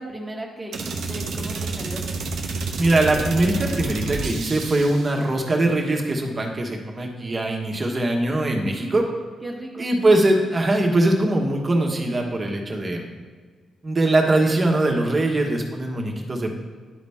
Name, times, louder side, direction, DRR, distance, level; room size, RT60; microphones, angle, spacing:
voice 1, 0.0-2.0 8.6-8.9 9.4-9.9, right 1 dB, 15° right, 0 dB, 1.5 m, -36 dB
sound 1, 0.7-5.2, right 3 dB, 80° right, 0.8 m, -29 dB
voice 2, 2.7-9.0 9.8-13.0 13.8-16.5, right 2 dB, 35° right, 1 dB, 1.4 m, -21 dB
10.5 x 4.0 x 3.5 m, 1.5 s
cardioid pair, 65°, 0 cm